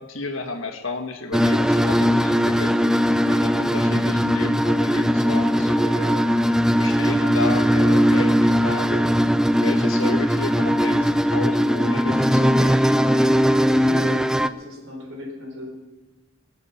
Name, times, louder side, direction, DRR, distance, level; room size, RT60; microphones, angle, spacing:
voice 1, 0.0-2.8 3.2-6.3 6.8-9.0 9.6-12.8, left 2 dB, 75° left, 4 dB, 1.7 m, -32 dB
sound 1, 1.3-14.5, equal, 5° right, 0.4 m, -19 dB
voice 2, 13.8-15.7, left 1 dB, 75° right, 0 dB, 4.3 m, -36 dB
21.0 x 7.5 x 7.1 m, 1.2 s
head